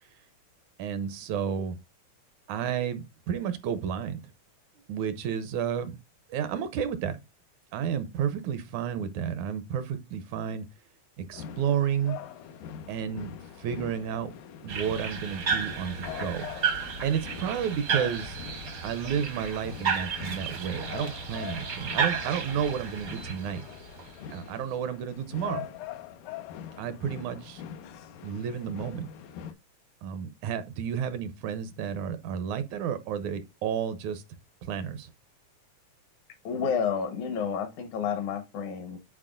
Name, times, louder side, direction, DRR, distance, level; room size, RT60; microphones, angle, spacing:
voice 1, 0.8-1.8 2.5-4.2 4.9-6.0 6.3-7.2 7.7-10.7 11.2-12.2 12.9-13.3 13.6-14.3 14.6-16.5 17.0-18.5 18.8-23.6 24.3-25.7 26.8-27.6 28.2-29.1 30.0-34.2 34.6-35.1, right 8 dB, 80° right, 2.0 m, -31 dB
sound 1, 11.3-29.5, left 9 dB, 90° left, 2.2 m, -43 dB
sound 2, 14.7-24.4, right 6 dB, 60° right, 0.9 m, -33 dB
voice 2, 36.4-39.0, left 6 dB, 75° left, 2.4 m, -30 dB
9.8 x 4.4 x 2.4 m
omnidirectional pair, 3.6 m